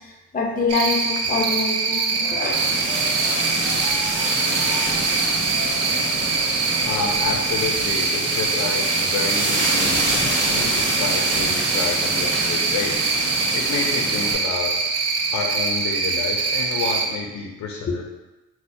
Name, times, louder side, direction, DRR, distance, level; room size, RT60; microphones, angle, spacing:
voice 1, 0.0-2.7 17.9-18.0, left 4 dB, 30° left, 0 dB, 0.6 m, -25 dB
Cricket, 0.7-17.1, right 4 dB, 55° right, 0.5 m, -24 dB
Wind instrument woodwind instrument, 1.8-7.3, equal, 15° right, 0.7 m, -40 dB
sound 1, 2.5-14.3, right 1 dB, 40° right, 1.0 m, -26 dB
voice 2, 6.8-13.0 13.5-18.0, left 5 dB, 70° left, 1 dB, 0.5 m, -29 dB
4.1 x 2.1 x 2.6 m, 1.0 s
cardioid pair, 90°, 30 cm